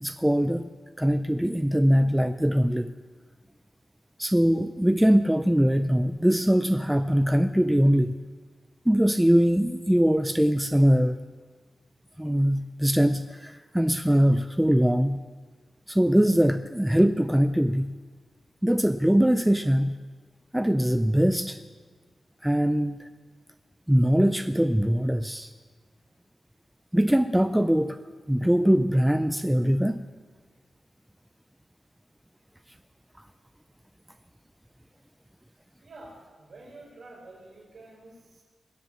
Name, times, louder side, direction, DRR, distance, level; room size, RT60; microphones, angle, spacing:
voice 1, 0.0-0.7 1.0-2.9 4.2-8.1 8.9-11.2 12.2-15.2 15.9-17.9 18.6-20.0 20.5-21.6 22.4-23.1 23.9-25.5 26.9-28.0 28.3-30.0, equal, 5° right, 10 dB, 0.4 m, -22 dB
voice 2, 35.8-38.4, right 2 dB, 55° right, -2 dB, 5.4 m, -48 dB
20.5 x 7.4 x 8.8 m, 1.5 s
wide cardioid pair, 145°, 0 cm